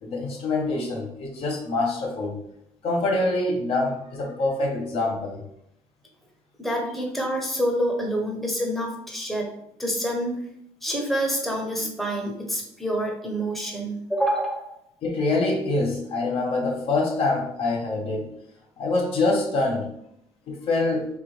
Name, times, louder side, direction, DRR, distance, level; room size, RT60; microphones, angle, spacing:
voice 1, 0.0-2.4 2.8-5.4 15.0-18.3 18.8-19.9 20.5-21.1, left 2 dB, 60° left, 0 dB, 1.0 m, -25 dB
voice 2, 6.6-9.5 9.8-10.4 10.8-14.8, equal, ahead, 0 dB, 0.8 m, -27 dB
3.4 x 2.5 x 4.6 m, 0.76 s
cardioid pair, 110°, 11 cm